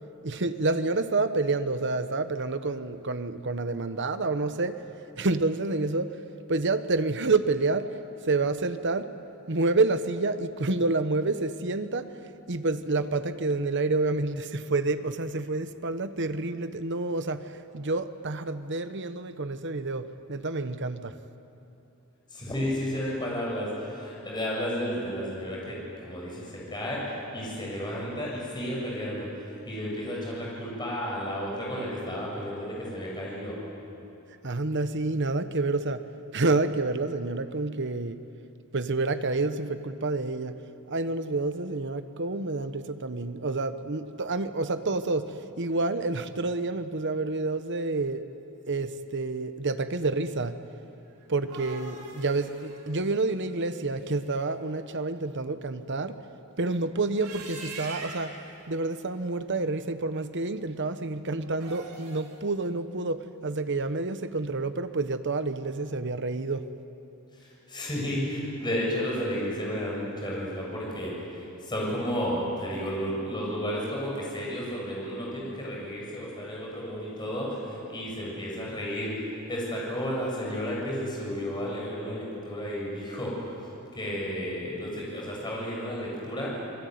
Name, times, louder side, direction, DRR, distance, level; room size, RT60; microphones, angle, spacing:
voice 1, 0.2-4.8 5.2-6.1 6.5-7.9 8.2-9.1 9.5-12.1 12.5-21.1 34.4-36.0 36.3-38.2 38.7-40.5 40.9-45.3 45.6-48.2 48.7-50.5 51.3-56.2 56.6-58.4 58.7-66.6, right 3 dB, 55° right, 10 dB, 1.1 m, -28 dB
voice 2, 22.3-29.3 29.7-33.6 67.4-79.2 79.5-83.6 83.9-86.6, equal, 20° left, -4 dB, 7.5 m, -32 dB
sound 1, 51.2-54.3 57.0-58.5 61.5-62.4, right 3 dB, 80° right, 4.4 m, -43 dB
27.0 x 21.5 x 9.5 m, 3.0 s
head